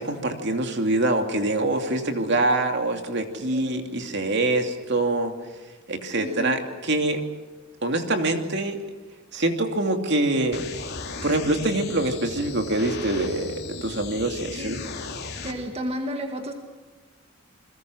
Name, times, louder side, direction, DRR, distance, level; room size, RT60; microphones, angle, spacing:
voice 1, 0.0-5.3 5.9-7.2 7.8-8.8 9.3-10.6 11.2-14.8, right 2 dB, 55° right, 5 dB, 2.8 m, -25 dB
voice 2, 3.5-3.9 6.2-6.6 14.6-14.7 15.4-16.5, equal, 30° right, 4 dB, 2.0 m, -32 dB
sound 1, 10.5-15.5, left 4 dB, 50° left, 3.4 m, -36 dB
29.5 x 22.0 x 6.4 m, 1.3 s
head